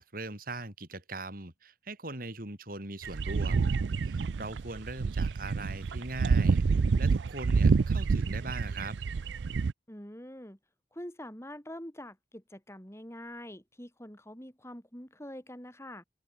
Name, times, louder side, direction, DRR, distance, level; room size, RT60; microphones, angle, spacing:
voice 1, 0.0-3.8 4.0-6.6 7.0-9.0, right 2 dB, 50° right, 4.6 m, -41 dB
sound 1, 3.0-9.7, right 4 dB, 80° right, 0.4 m, -27 dB
voice 2, 9.9-10.6 10.9-16.0, left 1 dB, 15° left, 4.4 m, -45 dB
head